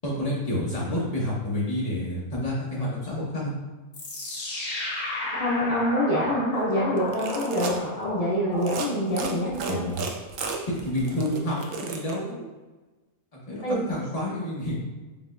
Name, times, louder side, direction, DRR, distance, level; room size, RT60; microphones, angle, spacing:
voice 1, 0.0-3.5 9.7-10.0 10.8-12.5 13.3-14.8, left 1 dB, 25° left, -6 dB, 1.2 m, -29 dB
sound 1, 3.9-9.2, left 1 dB, 85° left, 1.5 m, -33 dB
voice 2, 5.3-9.9 13.6-13.8, equal, 70° left, -6 dB, 0.3 m, -26 dB
sound 2, 7.0-7.8 8.5-8.9 9.2-12.1, right 5 dB, 70° right, 0.9 m, -33 dB
5.0 x 3.5 x 2.5 m, 1.2 s
omnidirectional pair, 1.5 m